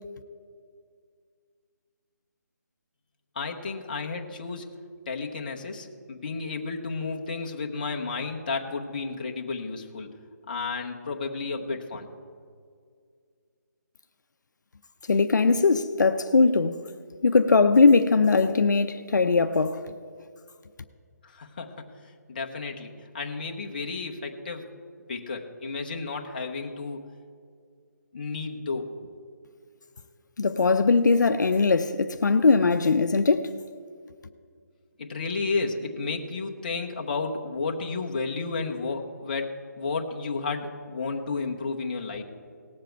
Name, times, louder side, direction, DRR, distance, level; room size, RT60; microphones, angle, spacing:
voice 1, 3.3-4.7 5.1-10.1 10.5-12.1 21.2-21.9 22.3-24.7 25.1-27.1 28.1-28.9 35.0-42.2, left 4 dB, 30° left, 0.9 m, -32 dB
voice 2, 15.1-16.8 17.2-19.8 30.4-33.5, left 4 dB, 75° left, 0.6 m, -20 dB
18.0 x 7.5 x 4.5 m
hypercardioid pair, 175°, 10 cm